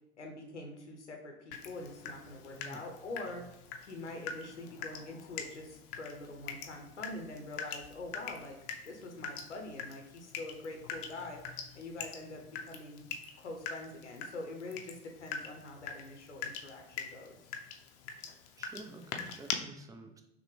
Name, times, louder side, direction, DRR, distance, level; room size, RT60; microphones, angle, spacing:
voice 1, 0.2-3.4 3.8-8.6 8.8-11.4 11.7-13.1 13.4-17.4, left 2 dB, 85° left, 2 dB, 0.7 m, -45 dB
Water tap faucet / Drip, 1.5-19.5, left 6 dB, 45° left, 0.6 m, -44 dB
voice 2, 2.5-2.8 18.6-20.2, right 2 dB, 10° right, 5 dB, 0.3 m, -49 dB
5.8 x 2.1 x 3.2 m, 0.85 s
figure-of-eight pair, 75°, 34 cm